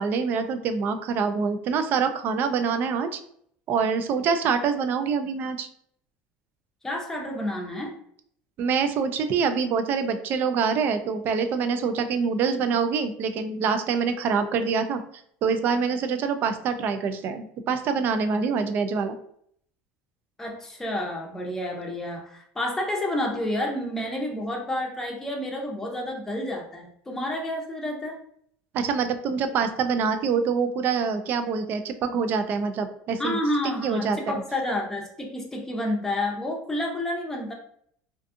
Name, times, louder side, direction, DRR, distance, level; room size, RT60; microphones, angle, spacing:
voice 1, 0.0-3.2 3.7-5.7 8.6-15.0 15.4-19.2 28.7-33.4 33.8-34.4, right 5 dB, 50° right, 9 dB, 0.3 m, -25 dB
voice 2, 6.8-7.9 20.4-28.2 33.2-37.5, left 1 dB, 10° left, -1 dB, 0.6 m, -30 dB
2.5 x 2.3 x 2.5 m, 0.65 s
supercardioid pair, 120°, 5 cm